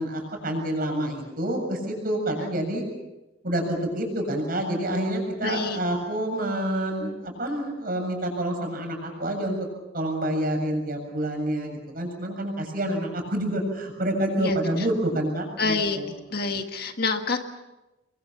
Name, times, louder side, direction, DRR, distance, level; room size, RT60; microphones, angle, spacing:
voice 1, 0.0-2.8 3.4-9.6 9.9-16.1, right 1 dB, 50° right, 2 dB, 7.5 m, -28 dB
voice 2, 5.4-5.8 14.4-14.9 15.6-16.0 16.3-17.4, left 4 dB, 55° left, 5 dB, 1.8 m, -27 dB
29.5 x 23.0 x 5.9 m, 1.0 s
head